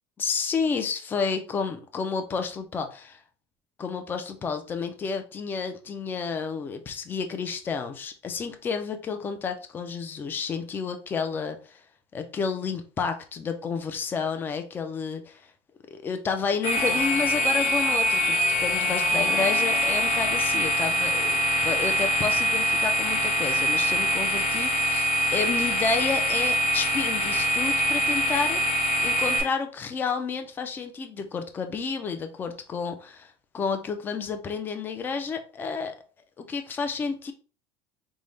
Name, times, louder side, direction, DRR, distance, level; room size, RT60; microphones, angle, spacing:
voice 1, 0.2-3.2 3.8-11.8 12.1-15.5 15.9-36.0 36.4-37.3, left 5 dB, 15° left, 7 dB, 0.4 m, -31 dB
sound 1, 16.6-29.4, equal, 60° left, 2.0 m, -24 dB
5.3 x 2.1 x 3.1 m, 0.36 s
cardioid pair, 180°, 13 cm